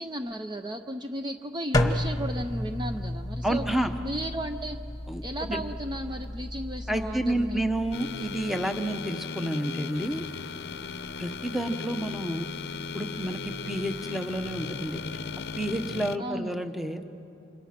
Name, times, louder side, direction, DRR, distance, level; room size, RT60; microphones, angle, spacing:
voice 1, 0.0-3.6 4.0-4.8 5.2-7.7 16.2-16.5, right 1 dB, 25° right, 6 dB, 0.6 m, -34 dB
sound 1, 1.7-7.9, left 1 dB, 20° left, 1.2 m, -32 dB
voice 2, 3.4-3.9 5.1-5.6 6.9-10.2 11.2-12.5 12.9-15.0 15.6-17.0, right 1 dB, ahead, 7 dB, 1.0 m, -30 dB
sound 2, 7.9-16.2, left 5 dB, 60° left, 0.7 m, -37 dB
29.0 x 27.0 x 5.9 m, 2.7 s
head